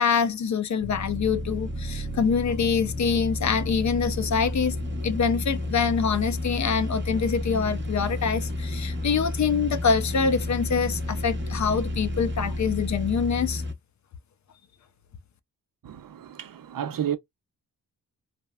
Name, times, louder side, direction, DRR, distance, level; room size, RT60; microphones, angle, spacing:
voice 1, 0.0-4.8 5.0-13.6, left 6 dB, 50° left, 0.6 m, -25 dB
sound 1, 0.8-13.7, left 1 dB, 30° right, 0.8 m, -31 dB
voice 2, 15.8-17.2, right 10 dB, 65° right, 0.7 m, -31 dB
3.3 x 2.0 x 2.3 m
cardioid pair, 80°, 37 cm